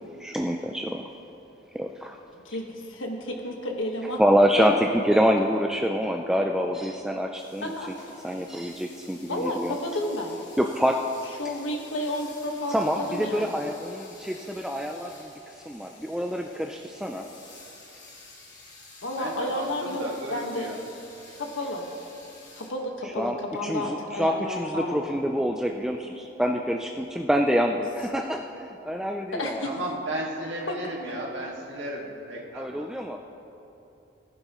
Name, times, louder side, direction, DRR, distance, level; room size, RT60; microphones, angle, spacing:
voice 1, 0.2-1.1 1.7-2.2 4.2-8.0 8.2-9.8 10.6-11.0 12.7-17.3 23.2-29.7 32.5-33.2, equal, 5° right, 2 dB, 0.3 m, -26 dB
voice 2, 2.4-4.2 4.6-5.0 6.6-6.7 7.6-7.9 9.3-10.4 11.4-13.6 19.0-20.7 21.4-21.8 22.6-25.1 29.3-29.7 30.7-30.8, left 1 dB, 80° left, 2 dB, 1.5 m, -31 dB
sound 1, 7.3-22.7, left 3 dB, 40° left, 2.3 m, -50 dB
voice 3, 19.2-20.8 29.6-32.9, right 1 dB, 70° right, -3 dB, 2.0 m, -34 dB
18.5 x 11.0 x 3.0 m, 2.8 s
head